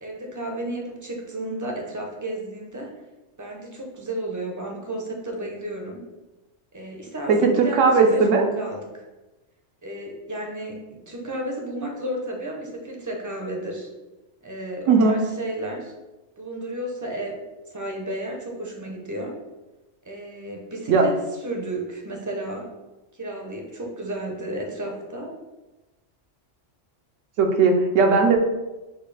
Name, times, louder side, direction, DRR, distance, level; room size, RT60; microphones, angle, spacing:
voice 1, 0.0-2.9 3.4-6.1 6.7-9.0 9.8-13.9 14.4-15.9 16.4-17.4 17.7-19.4 20.0-22.7 23.1-25.3, right 1 dB, 25° right, 1 dB, 0.4 m, -33 dB
voice 2, 7.3-8.4 14.9-15.2 20.9-21.1 27.4-28.4, right 4 dB, 90° right, 3 dB, 1.0 m, -18 dB
6.4 x 2.3 x 3.3 m, 1.1 s
omnidirectional pair, 1.2 m